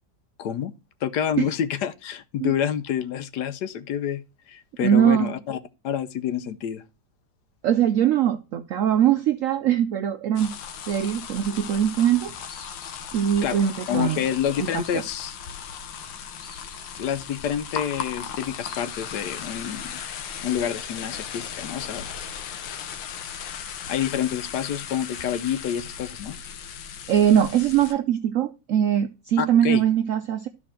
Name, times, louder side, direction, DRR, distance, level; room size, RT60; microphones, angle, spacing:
voice 1, 0.4-0.7 1.0-5.6 5.8-6.8 13.4-13.6 13.9-15.4 17.0-19.9 20.4-22.1 23.9-26.4 29.4-29.8, left 9 dB, 70° left, 1.2 m, -28 dB
voice 2, 4.8-5.3 7.6-10.5 10.9-12.3 13.1-14.2 14.6-15.0 27.1-30.5, right 9 dB, 85° right, 0.7 m, -21 dB
sound 1, 10.4-27.9, left 8 dB, 90° left, 1.6 m, -37 dB
sound 2, 11.9-20.2, left 2 dB, 20° left, 5.2 m, -54 dB
12.0 x 4.3 x 4.3 m
omnidirectional pair, 2.0 m